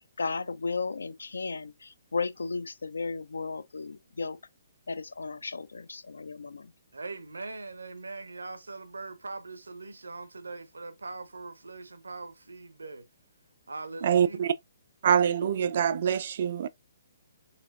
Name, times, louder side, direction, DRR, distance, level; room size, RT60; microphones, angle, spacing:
voice 1, 0.2-4.4 4.9-6.7, left 4 dB, 70° left, 0.5 m, -34 dB
voice 2, 6.9-13.1 13.7-14.5, right 3 dB, 70° right, 0.8 m, -41 dB
voice 3, 14.0-14.5 15.0-16.7, right 8 dB, 45° right, 0.4 m, -25 dB
4.2 x 3.8 x 2.5 m
figure-of-eight pair, 130°, 0 cm